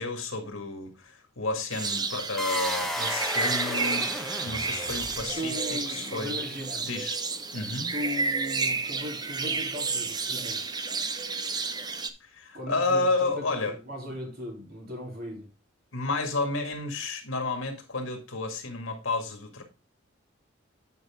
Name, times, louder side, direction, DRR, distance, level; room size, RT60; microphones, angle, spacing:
voice 1, 0.0-6.4 6.8-7.2 7.5-7.9 12.2-13.7 15.9-19.6, left 3 dB, 90° left, 2.0 m, -31 dB
sound 1, 1.7-12.1, right 4 dB, 20° right, 0.6 m, -31 dB
sound 2, 2.4-5.5, left 1 dB, ahead, 0.9 m, -33 dB
voice 2, 5.2-6.9 7.9-10.7 12.5-15.5, equal, 50° right, 3.4 m, -37 dB
9.4 x 5.3 x 3.6 m
head